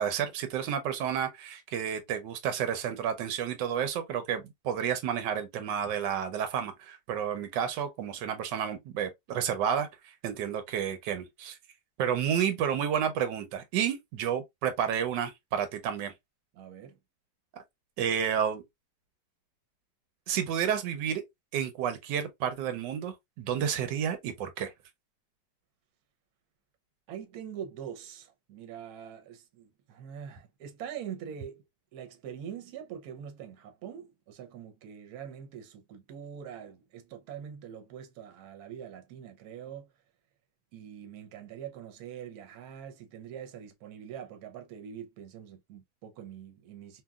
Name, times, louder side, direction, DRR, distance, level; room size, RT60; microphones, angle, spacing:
voice 1, 0.0-11.6 12.0-16.1 17.5-17.6 18.0-18.6 20.3-21.2 21.5-24.7, right 8 dB, 85° right, 1.2 m, -31 dB
voice 2, 16.5-17.0 27.1-31.6 31.9-39.9 40.7-47.0, right 8 dB, 65° right, 1.1 m, -44 dB
2.8 x 2.5 x 2.2 m
omnidirectional pair, 1.9 m